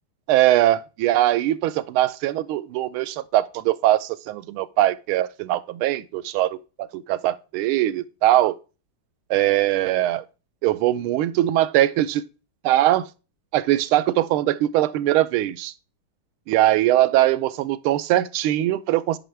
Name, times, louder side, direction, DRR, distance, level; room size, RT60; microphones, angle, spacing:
voice 1, 0.3-8.5 9.3-10.2 10.6-12.2 12.6-13.1 13.5-15.7 16.5-19.2, right 14 dB, 85° right, 1.4 m, -21 dB
9.1 x 5.5 x 3.2 m
omnidirectional pair, 2.3 m